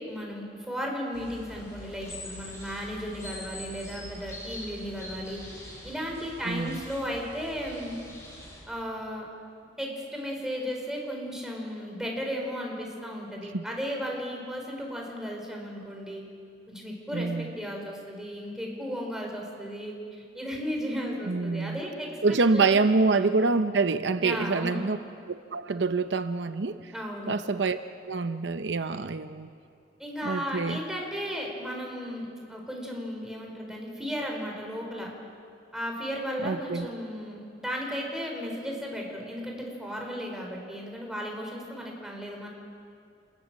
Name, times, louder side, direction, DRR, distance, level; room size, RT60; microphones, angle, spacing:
voice 1, 0.0-5.4 5.8-7.9 8.7-9.3 9.8-16.2 16.7-23.4 24.2-24.8 26.9-27.3 30.0-35.1 35.7-42.5, equal, 5° right, 0 dB, 4.9 m, -35 dB
sound 1, 1.1-8.6, left 1 dB, 15° left, 6.6 m, -44 dB
voice 2, 6.4-6.8 13.5-13.6 17.1-17.5 21.2-21.8 22.2-25.0 25.3-26.9 27.3-27.8 28.1-29.5 30.2-30.8 36.4-36.9, right 4 dB, 75° right, 10 dB, 0.7 m, -26 dB
27.5 x 20.0 x 7.5 m, 2.4 s
head